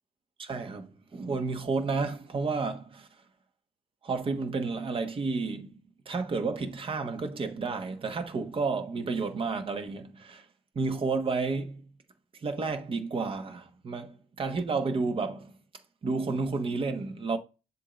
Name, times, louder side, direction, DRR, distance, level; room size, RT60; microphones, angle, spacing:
voice 1, 0.4-3.1 4.0-5.8 6.0-10.5 10.7-11.8 12.4-15.5 16.0-17.4, right 4 dB, 30° right, 1.3 m, -31 dB
7.3 x 2.8 x 5.1 m
cardioid pair, 110°, 17 cm